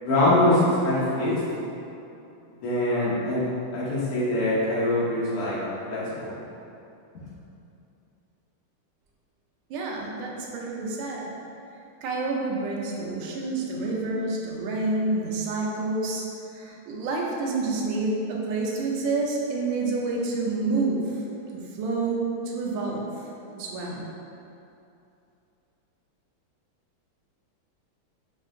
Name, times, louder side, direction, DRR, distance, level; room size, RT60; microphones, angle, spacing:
voice 1, 0.0-1.3 2.6-3.4 3.7-5.6 5.9-6.3, left 1 dB, 90° left, -9 dB, 1.9 m, -23 dB
voice 2, 9.7-11.3 12.0-16.2 16.5-21.2 21.7-23.0 23.6-24.1, right 3 dB, 70° right, -2 dB, 1.2 m, -28 dB
5.5 x 2.7 x 2.5 m, 2.7 s
omnidirectional pair, 2.4 m